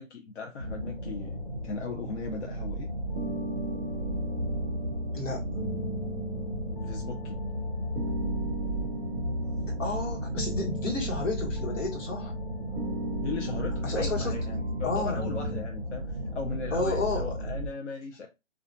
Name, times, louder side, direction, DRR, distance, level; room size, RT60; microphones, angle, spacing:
voice 1, 0.0-1.4 1.6-2.9 6.7-7.4 13.2-18.3, left 5 dB, 65° left, 0.6 m, -37 dB
sound 1, 0.6-17.7, equal, 25° right, 0.8 m, -35 dB
sound 2, 3.1-15.6, right 1 dB, 10° left, 0.6 m, -35 dB
voice 2, 9.8-12.3 13.8-14.3 14.8-15.2 16.7-17.3, left 3 dB, 85° left, 1.2 m, -31 dB
2.4 x 2.1 x 2.5 m
hypercardioid pair, 170°, 37 cm